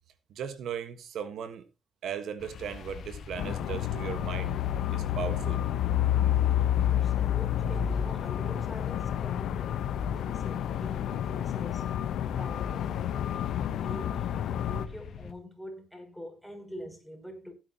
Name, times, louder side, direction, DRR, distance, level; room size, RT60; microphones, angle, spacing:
voice 1, 0.3-1.6 2.0-4.5 4.9-5.6, right 8 dB, 75° right, 1.4 m, -37 dB
sound 1, 2.4-15.3, left 7 dB, 60° left, 1.3 m, -44 dB
sound 2, 3.4-14.9, left 10 dB, 80° left, 0.9 m, -29 dB
voice 2, 6.9-13.3 13.6-17.5, equal, ahead, 5.7 m, -45 dB
16.5 x 9.7 x 2.9 m
cardioid pair, 90°, 0 cm